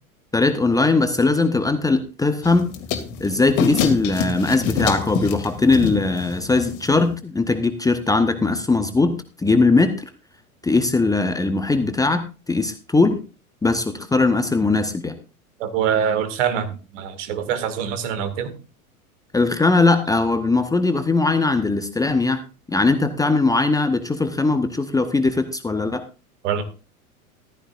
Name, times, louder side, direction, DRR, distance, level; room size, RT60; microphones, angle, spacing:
voice 1, 0.3-2.7 3.2-10.1 10.6-13.2 13.6-15.1 19.3-22.4 22.7-26.0, left 3 dB, 10° left, 8 dB, 1.0 m, -20 dB
sound 1, 2.4-7.2, left 7 dB, 45° left, 2.5 m, -27 dB
voice 2, 15.6-18.5 26.4-26.6, right 8 dB, 55° right, 10 dB, 2.3 m, -24 dB
14.5 x 14.0 x 2.6 m, 0.32 s
figure-of-eight pair, 85°, 44 cm